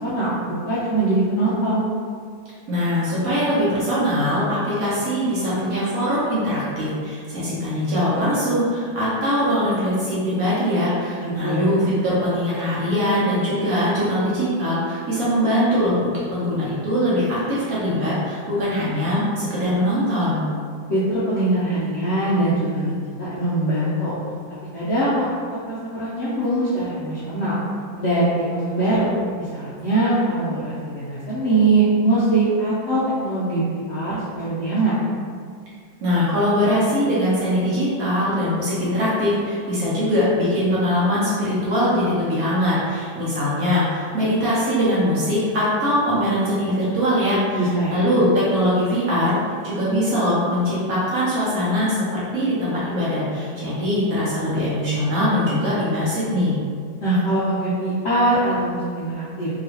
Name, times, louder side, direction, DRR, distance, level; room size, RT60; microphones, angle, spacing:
voice 1, 0.0-1.8 11.2-11.7 20.9-24.1 24.7-25.4 25.6-27.6 28.0-29.1 29.4-34.9 47.5-48.0 57.0-59.5, right 2 dB, 65° left, -11 dB, 0.7 m, -22 dB
voice 2, 2.7-20.4 36.0-47.6 47.9-49.4 49.6-56.6, equal, 60° right, -9 dB, 1.0 m, -22 dB
3.0 x 2.9 x 2.8 m, 2.1 s
omnidirectional pair, 2.0 m